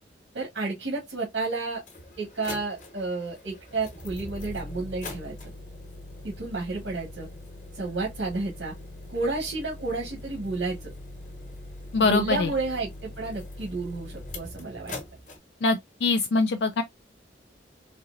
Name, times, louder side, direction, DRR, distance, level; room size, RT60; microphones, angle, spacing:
voice 1, 0.3-1.8 2.2-5.4 6.2-7.3 7.7-8.7 9.1-10.9 12.0-14.9, right 3 dB, 85° right, 1.4 m, -31 dB
sound 1, 1.1-1.2 1.8-15.4, left 1 dB, 45° left, 1.2 m, -42 dB
voice 2, 11.9-12.5 15.6-16.8, left 3 dB, 65° left, 0.4 m, -23 dB
4.3 x 2.8 x 2.5 m
head